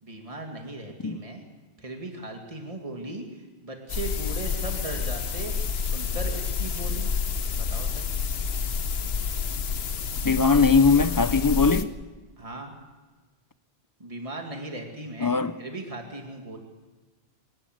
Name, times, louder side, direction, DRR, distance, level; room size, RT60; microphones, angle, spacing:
voice 1, 0.0-1.4 1.8-5.5 5.8-7.1 7.6-8.0 12.4-12.7 14.0-16.6, right 2 dB, 30° right, 2.3 m, -38 dB
sound 1, 3.9-11.8, left 6 dB, 75° left, 1.2 m, -29 dB
voice 2, 10.2-11.9 15.2-15.5, left 4 dB, 25° left, 0.5 m, -20 dB
26.5 x 12.5 x 8.0 m
omnidirectional pair, 1.1 m